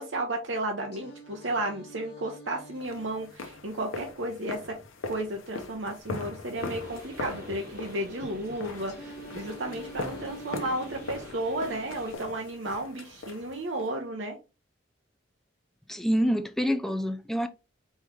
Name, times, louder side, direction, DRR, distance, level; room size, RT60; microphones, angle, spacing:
voice 1, 0.0-4.8 5.0-14.4, right 1 dB, 65° right, 0.9 m, -33 dB
Singing, 0.9-4.9 8.9-12.9, equal, 55° left, 1.3 m, -49 dB
sound 1, 2.8-13.9, left 3 dB, 80° left, 0.8 m, -40 dB
sound 2, 6.6-12.2, equal, 50° right, 2.1 m, -47 dB
voice 2, 15.9-17.5, equal, ahead, 0.4 m, -26 dB
4.3 x 3.1 x 3.5 m
head